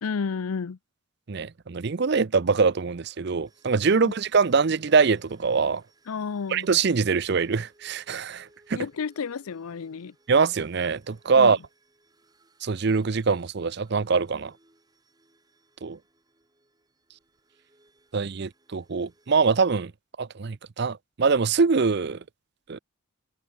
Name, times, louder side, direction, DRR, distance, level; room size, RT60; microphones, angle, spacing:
voice 1, 0.0-0.8 3.9-4.1 6.1-6.7 8.7-10.1 11.3-11.6, left 5 dB, 90° left, 0.5 m, -31 dB
voice 2, 1.3-5.8 6.5-8.8 10.3-11.6 12.6-14.5 15.8-16.0 18.1-19.9 20.2-22.2 22.7-22.8, right 5 dB, 50° right, 0.5 m, -23 dB
sound 1, 3.4-19.4, right 2 dB, 20° right, 6.7 m, -64 dB
head